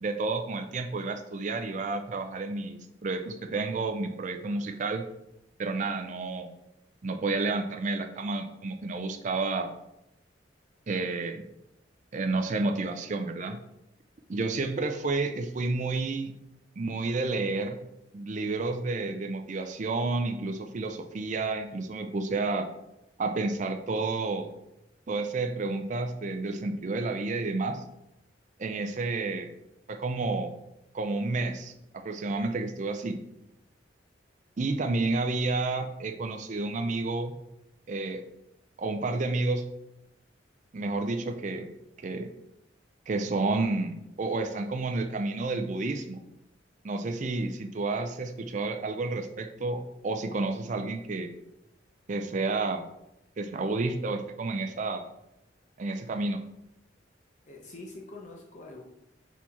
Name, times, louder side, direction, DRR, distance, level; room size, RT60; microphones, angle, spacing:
voice 1, 0.0-5.0 5.6-6.5 7.0-9.7 10.9-11.4 12.1-13.6 14.3-16.3 16.8-17.8 18.1-22.7 23.2-24.5 25.1-27.8 28.6-29.5 29.9-30.5 30.9-33.2 34.6-37.3 37.9-38.2 38.8-39.7 40.7-41.7 42.0-42.3 43.1-46.2 46.8-51.3 52.1-52.8 53.4-55.0 55.8-56.4, right 3 dB, 40° right, 6 dB, 0.4 m, -30 dB
voice 2, 57.5-58.8, left 2 dB, 40° left, -1 dB, 0.7 m, -45 dB
5.8 x 4.5 x 4.1 m, 0.88 s
head